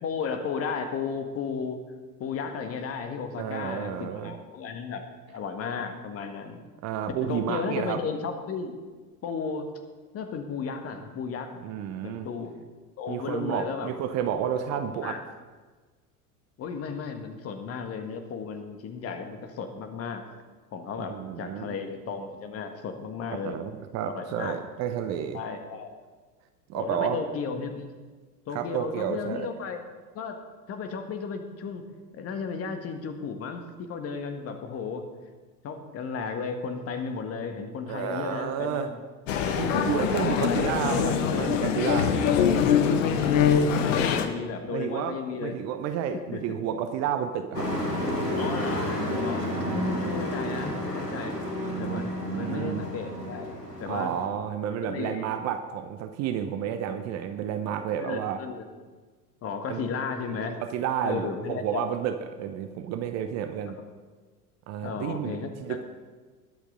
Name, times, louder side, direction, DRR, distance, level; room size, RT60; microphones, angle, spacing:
voice 1, 0.0-1.8 2.2-5.0 5.3-6.6 7.3-8.7 9.2-9.7 10.1-11.5 12.0-12.5 13.0-13.9 14.7-15.2 16.6-20.3 20.7-23.6 24.0-24.6 25.3-25.9 26.7-27.9 28.5-29.8 30.1-30.4 30.7-31.8 32.1-33.6 33.9-35.0 35.6-39.0 39.7-40.7 42.9-45.6 46.1-46.6 48.4-51.4 51.8-53.5 53.8-54.1 54.8-55.3 58.0-58.6 59.4-60.5 61.0-61.9 64.8-65.8, left 5 dB, 30° left, 6 dB, 1.5 m, -34 dB
voice 2, 3.4-4.3 6.8-8.0 11.6-12.3 13.1-15.2 21.0-21.7 23.4-25.4 26.7-27.2 28.5-29.5 37.9-38.9 39.6-42.2 44.7-47.7 51.9-52.8 53.9-58.4 59.7-59.9 60.2-63.8 64.7-65.8, right 9 dB, 35° right, 8 dB, 0.9 m, -31 dB
Male speech man speaking, 39.3-44.3, left 7 dB, 55° left, 1.2 m, -23 dB
Truck, 47.5-54.3, equal, 90° left, 1.8 m, -31 dB
21.0 x 8.1 x 3.8 m, 1.4 s
figure-of-eight pair, 80°, 47 cm